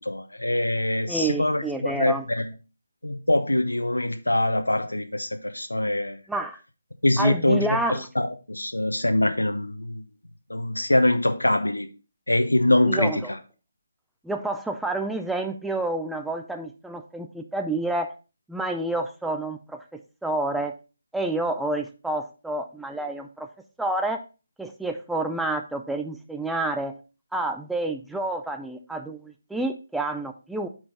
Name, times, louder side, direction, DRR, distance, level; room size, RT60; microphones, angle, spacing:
voice 1, 0.1-2.4 3.0-6.2 7.0-7.7 8.2-10.0 10.5-11.9 12.3-13.2, left 1 dB, 75° left, 0.9 m, -23 dB
voice 2, 1.1-2.3 6.3-6.6 7.2-8.1 12.8-13.3 14.2-18.1 18.5-20.7 21.1-23.5 23.8-24.2 24.6-26.9 27.3-30.7, right 2 dB, ahead, 0.4 m, -29 dB
8.3 x 4.7 x 3.7 m
figure-of-eight pair, 150°, 0 cm